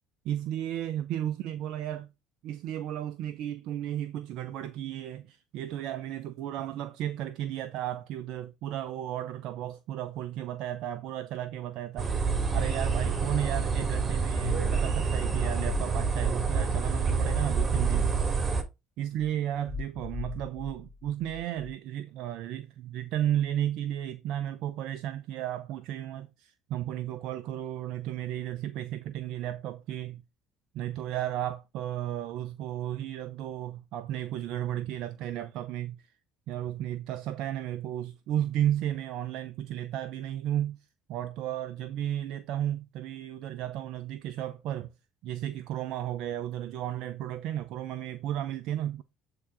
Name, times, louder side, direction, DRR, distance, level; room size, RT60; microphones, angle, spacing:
voice 1, 0.2-2.1 2.4-12.1 12.5-18.2 19.0-30.2 30.7-36.1 36.5-40.8 41.1-44.9 45.2-49.0, right 11 dB, 65° right, 0.6 m, -34 dB
sound 1, 12.0-18.6, right 5 dB, 30° right, 3.0 m, -27 dB
sound 2, 14.4-14.9 15.5-16.3 19.2-21.7, left 5 dB, 25° left, 2.7 m, -40 dB
8.5 x 3.8 x 4.8 m
hypercardioid pair, 60°, 0 cm